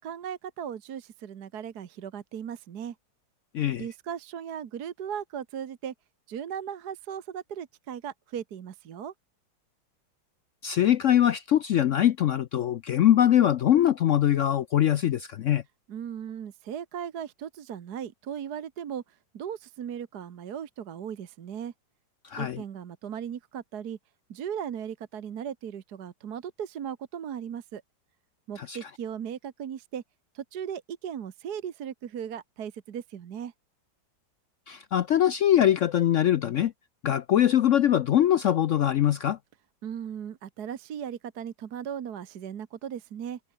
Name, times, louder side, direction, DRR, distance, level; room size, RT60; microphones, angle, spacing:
voice 1, 0.0-2.9 3.8-5.9 6.3-9.1 15.9-21.7 22.4-24.0 24.3-27.8 28.5-30.0 30.3-33.5 39.8-43.4, right 8 dB, 60° right, 1.7 m, -37 dB
voice 2, 3.5-3.8 10.6-15.6 22.2-22.6 28.6-28.8 34.7-36.7 37.0-39.4, left 11 dB, 80° left, 0.6 m, -22 dB
omnidirectional pair, 2.0 m